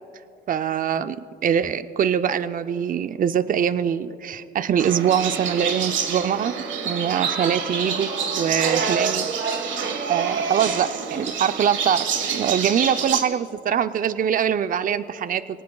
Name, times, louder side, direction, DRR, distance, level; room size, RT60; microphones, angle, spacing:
voice 1, 0.5-1.2 1.4-6.5 6.8-8.1 8.4-9.3 10.1-15.6, right 8 dB, 45° right, 12 dB, 0.5 m, -23 dB
sound 1, 4.8-13.2, right 6 dB, 70° right, 1.5 m, -27 dB
23.5 x 18.5 x 2.3 m, 2.7 s
cardioid pair, 90°, 20 cm